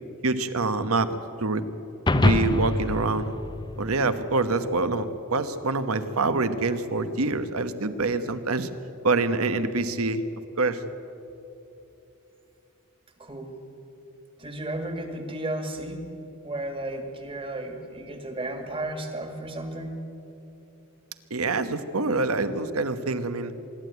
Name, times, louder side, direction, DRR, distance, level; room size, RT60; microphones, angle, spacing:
voice 1, 0.2-1.6 2.1-3.3 3.8-8.7 9.0-10.2 10.6-10.8 21.3-23.5, right 3 dB, 75° right, 11 dB, 1.1 m, -26 dB
sound 1, 2.1-4.5, left 2 dB, 20° left, 0.6 m, -25 dB
voice 2, 13.2-13.6 14.4-16.0 16.4-20.0, right 1 dB, 25° right, 5 dB, 1.9 m, -33 dB
25.0 x 11.5 x 9.3 m, 2.9 s
head